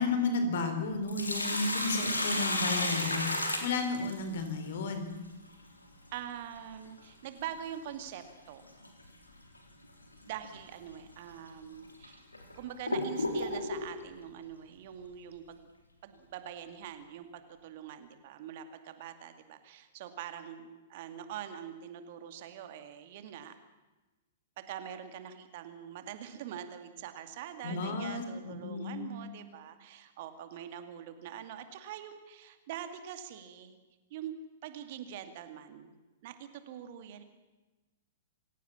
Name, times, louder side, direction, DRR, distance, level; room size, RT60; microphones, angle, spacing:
voice 1, 0.0-3.3 3.6-5.1 27.6-29.1, left 3 dB, 55° left, 7 dB, 4.3 m, -33 dB
Sink (filling or washing), 0.9-4.5 6.9-7.0 8.8-9.1 9.5-9.6 10.4-10.6 11.3-11.4 12.0-13.9, left 1 dB, 80° left, 3.6 m, -32 dB
voice 2, 6.1-8.6 10.3-12.2 12.6-15.7 16.0-17.3 17.6-23.5 24.6-33.8 34.1-34.3 34.6-35.9 36.2-36.4 36.7-37.2, right 10 dB, 45° right, 9 dB, 2.3 m, -44 dB
27.0 x 16.5 x 7.3 m, 1.1 s
figure-of-eight pair, 105°, 0 cm